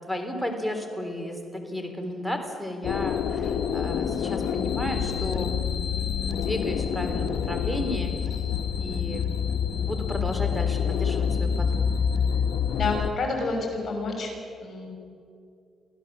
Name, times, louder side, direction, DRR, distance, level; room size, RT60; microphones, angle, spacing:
voice 1, 0.0-8.1 8.8-9.4 9.8-12.0, left 1 dB, ahead, 5 dB, 3.6 m, -33 dB
sound 1, 2.8-13.1, left 7 dB, 70° left, 1.1 m, -27 dB
voice 2, 12.8-14.3 14.6-14.9, left 3 dB, 45° left, 1 dB, 6.7 m, -29 dB
25.0 x 15.5 x 7.6 m, 2.4 s
cardioid pair, 90°, 0 cm